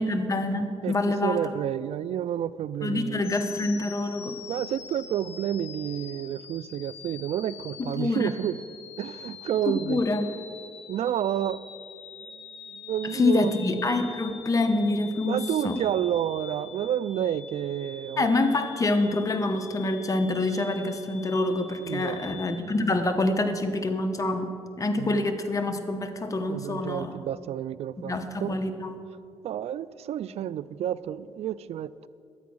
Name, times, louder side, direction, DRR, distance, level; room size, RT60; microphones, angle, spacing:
voice 1, 0.0-1.4 2.8-4.4 7.8-8.3 9.7-10.2 13.1-15.8 18.2-27.1 28.1-29.0, left 2 dB, 30° left, 1.1 m, -26 dB
voice 2, 1.2-3.2 4.5-8.6 9.0-10.0 10.9-11.6 12.7-13.6 15.2-18.3 21.9-22.4 25.0-25.2 26.5-28.1 28.4-28.6 29.4-32.1, right 10 dB, 70° right, 0.4 m, -30 dB
sound 1, 3.2-22.6, left 7 dB, 65° left, 1.0 m, -45 dB
12.0 x 8.2 x 6.1 m
cardioid pair, 80°, 11 cm